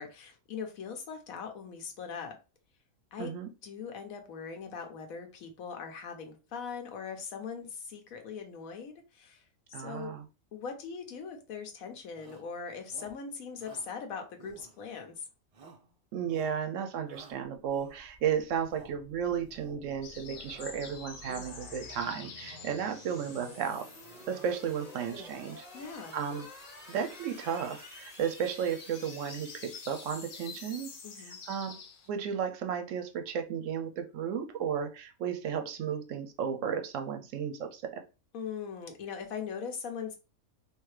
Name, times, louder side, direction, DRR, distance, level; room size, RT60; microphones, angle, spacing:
voice 1, 0.0-2.4 3.1-3.3 3.6-9.4 9.7-10.1 10.5-15.2 25.7-26.2 31.0-31.4 38.3-40.1, left 6 dB, 80° left, 1.2 m, -40 dB
voice 2, 3.2-3.5 9.7-10.2 16.1-23.9 24.3-25.6 26.1-26.5 26.9-30.9 31.2-31.8 32.1-38.0, right 8 dB, 70° right, 0.9 m, -34 dB
Shout, 12.1-12.5 12.9-13.2 13.6-13.9 14.4-15.1 15.5-15.9 16.2-16.6 17.1-18.2 18.6-19.0 19.4-19.9 20.2-20.9 21.2-21.9 22.4-22.8 23.2-23.7 24.0-24.6 24.9-25.6, right 3 dB, 55° right, 0.4 m, -52 dB
sound 1, 17.9-31.9, left 2 dB, 35° left, 0.9 m, -51 dB
sound 2, 20.0-24.4 24.6-32.1, left 6 dB, 60° left, 0.9 m, -50 dB
3.6 x 2.8 x 3.1 m
omnidirectional pair, 1.5 m